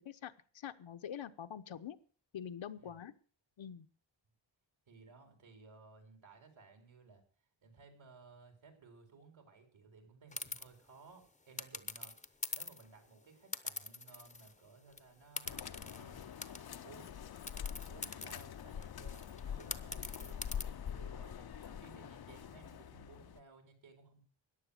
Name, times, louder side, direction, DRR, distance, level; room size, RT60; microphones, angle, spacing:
voice 1, 0.0-2.0 2.3-3.1 3.6-3.9, left 9 dB, 70° left, 9 dB, 1.0 m, -45 dB
voice 2, 4.9-7.2 7.6-16.3 16.8-17.2 17.9-24.2, right 4 dB, 70° right, 5 dB, 4.2 m, -59 dB
sound 1, 10.3-10.7 11.6-12.9 13.5-14.6 14.9-15.0 15.4-16.8 17.5-20.6, left 3 dB, 15° left, 0.8 m, -44 dB
sound 2, 15.4-23.4, left 8 dB, 50° left, 0.7 m, -45 dB
14.5 x 10.0 x 6.5 m, 0.41 s
wide cardioid pair, 150°, 48 cm